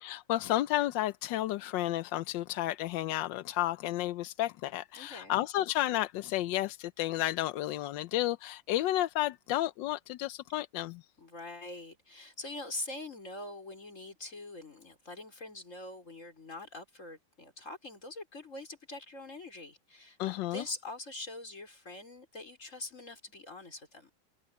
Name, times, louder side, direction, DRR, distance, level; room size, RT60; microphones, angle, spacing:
voice 1, 0.0-11.0 20.2-20.6, left 15 dB, 80° left, 1.3 m, -32 dB
voice 2, 4.9-5.4 11.2-24.1, left 2 dB, 40° left, 5.2 m, -44 dB
omnidirectional pair, 2.0 m